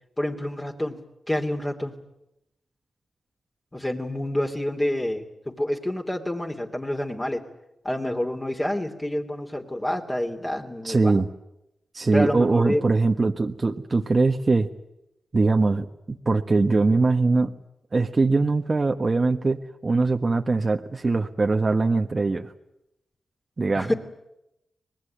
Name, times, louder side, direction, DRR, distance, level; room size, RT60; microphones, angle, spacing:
voice 1, 0.2-1.0 1.3-1.9 3.7-7.4 7.8-11.2 12.1-12.8 23.7-23.9, left 1 dB, 20° left, 2 dB, 2.9 m, -28 dB
voice 2, 10.8-11.3 11.9-14.7 15.3-17.5 17.9-22.5 23.6-23.9, right 3 dB, 40° right, 5 dB, 1.3 m, -22 dB
25.0 x 19.5 x 9.4 m, 0.86 s
cardioid pair, 70°, 0 cm